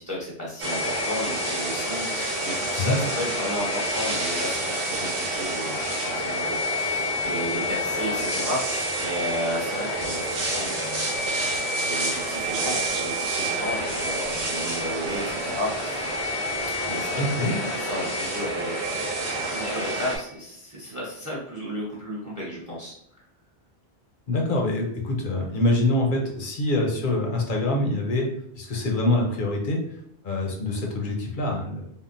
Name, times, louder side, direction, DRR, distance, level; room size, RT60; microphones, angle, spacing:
voice 1, 0.0-11.2 11.8-16.1 16.9-19.0 19.5-23.2, equal, 20° right, -5 dB, 0.7 m, -33 dB
sound 1, 0.6-20.2, equal, 85° right, 1.1 m, -28 dB
voice 2, 17.2-17.6 24.3-28.3 28.6-29.8 30.2-31.8, left 2 dB, 55° left, 1 dB, 0.7 m, -25 dB
3.6 x 2.2 x 2.5 m, 0.73 s
omnidirectional pair, 1.1 m